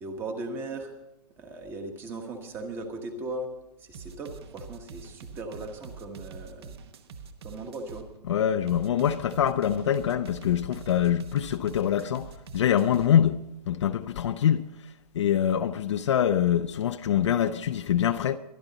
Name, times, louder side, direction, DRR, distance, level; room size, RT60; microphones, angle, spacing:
voice 1, 0.0-0.9 1.4-3.5 3.8-6.7 7.4-8.0, right 2 dB, 10° right, 1.2 m, -38 dB
sound 1, 3.9-8.1 8.7-13.1, right 5 dB, 40° right, 1.1 m, -44 dB
voice 2, 8.3-14.7 15.1-18.4, left 9 dB, 45° left, 0.6 m, -25 dB
23.5 x 10.5 x 4.0 m
hypercardioid pair, 170°, 21 cm